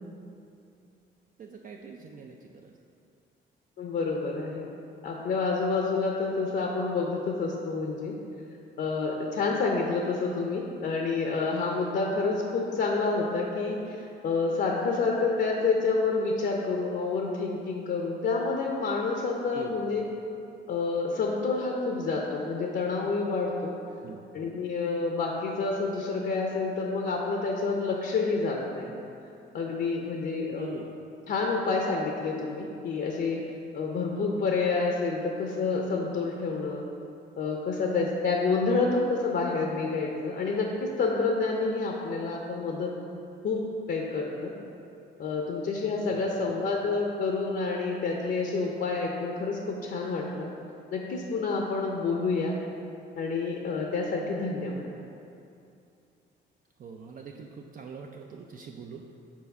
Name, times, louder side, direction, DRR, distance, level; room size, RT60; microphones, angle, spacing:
voice 1, 1.4-2.7 19.5-19.8 24.0-24.3 30.5-31.0 38.6-38.7 46.1-46.3 56.8-59.2, right 5 dB, 45° right, 2 dB, 0.4 m, -43 dB
voice 2, 3.8-4.7 5.0-8.1 8.8-20.0 20.7-23.7 24.3-28.9 29.5-30.7 31.3-33.4 33.7-36.8 37.4-42.9 43.4-43.6 43.9-44.5 45.2-50.5 50.9-52.6 53.1-54.9, left 4 dB, 55° left, 0 dB, 0.6 m, -28 dB
4.6 x 4.1 x 5.3 m, 2.7 s
cardioid pair, 90°, 20 cm